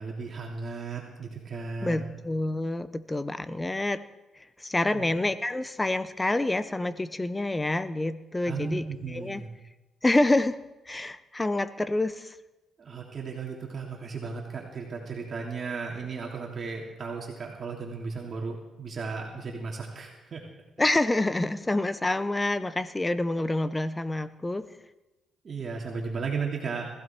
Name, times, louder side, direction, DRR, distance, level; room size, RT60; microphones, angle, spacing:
voice 1, 0.0-2.0 4.9-5.1 8.4-9.5 12.8-20.4 25.4-26.9, right 4 dB, 45° right, -2 dB, 3.0 m, -35 dB
voice 2, 1.8-4.0 4.6-9.4 10.0-10.6 10.9-12.4 20.8-24.7, left 2 dB, 15° left, 13 dB, 0.9 m, -27 dB
20.5 x 15.5 x 4.5 m, 1.1 s
cardioid pair, 90°, 0 cm